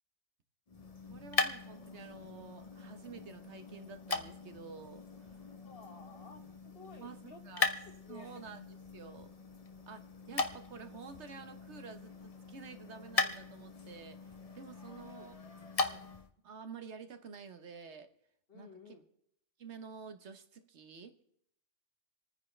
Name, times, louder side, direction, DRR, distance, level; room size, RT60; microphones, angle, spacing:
sound 1, 0.7-16.3, left 3 dB, 35° left, 0.9 m, -39 dB
voice 1, 1.0-5.4 7.0-7.7 8.1-8.7 8.9-9.3 9.9-15.4 15.7-16.0 16.4-18.1 18.5-18.9 19.6-21.2, right 5 dB, 70° right, 8 dB, 1.4 m, -50 dB
voice 2, 5.6-7.4 8.0-8.5 14.7-15.3 18.5-19.0, left 4 dB, 55° left, 2 dB, 1.5 m, -54 dB
27.5 x 9.8 x 3.3 m, 0.72 s
omnidirectional pair, 1.2 m